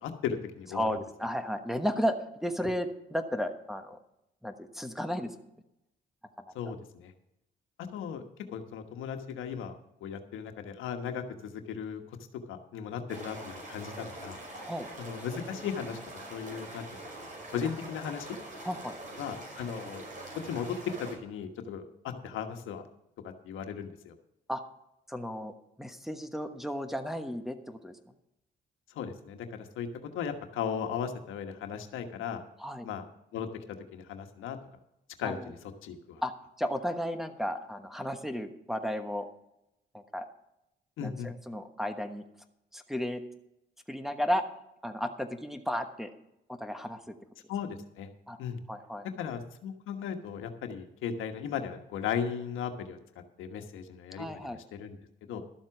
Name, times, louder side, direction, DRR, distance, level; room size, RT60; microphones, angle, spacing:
voice 1, 0.0-0.9 6.5-7.1 7.9-8.2 8.5-12.0 12.5-14.4 15.0-18.4 19.2-20.1 20.4-22.8 23.4-24.1 28.9-32.4 32.8-33.1 33.3-33.5 33.9-34.6 35.2-35.6 35.8-36.2 41.0-41.3 47.5-48.1 48.4-48.6 49.2-53.0 53.4-55.0 55.3-55.4, left 7 dB, 85° left, 6 dB, 1.3 m, -37 dB
voice 2, 0.7-4.0 4.4-5.3 14.6-14.9 18.6-18.9 24.5-24.6 25.1-28.0 32.6-32.9 35.2-35.5 36.2-36.3 36.6-39.3 39.9-40.3 41.0-42.2 42.7-43.2 43.9-44.4 44.8-46.1 46.5-47.2 48.3-48.4 48.7-49.1 54.2-54.6, equal, ahead, 5 dB, 1.2 m, -33 dB
sound 1, 13.1-21.2, right 1 dB, 40° right, 5.6 m, -44 dB
12.5 x 7.5 x 5.9 m, 0.83 s
cardioid pair, 90°, 20 cm